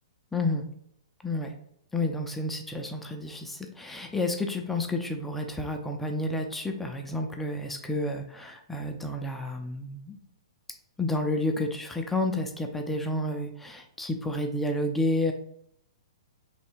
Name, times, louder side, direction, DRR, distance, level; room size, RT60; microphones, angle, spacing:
voice 1, 0.3-0.6 1.2-1.5 1.9-10.2 11.0-15.3, left 1 dB, 5° left, 3 dB, 0.4 m, -30 dB
3.3 x 2.8 x 4.4 m, 0.70 s
hypercardioid pair, 145°, 3 cm